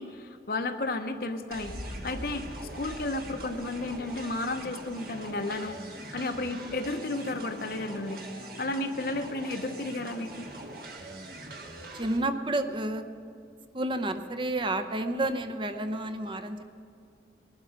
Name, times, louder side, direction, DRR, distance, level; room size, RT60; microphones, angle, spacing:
voice 1, 0.0-2.5 2.7-5.8 6.1-10.5, left 2 dB, 55° left, 7 dB, 0.9 m, -33 dB
sound 1, 1.5-5.4, equal, 5° left, 0.8 m, -44 dB
sound 2, 1.5-12.2, right 2 dB, 55° right, 1.6 m, -43 dB
voice 2, 11.9-13.1 13.7-16.6, right 1 dB, 30° right, 7 dB, 0.7 m, -30 dB
19.5 x 12.0 x 5.0 m, 2.3 s
head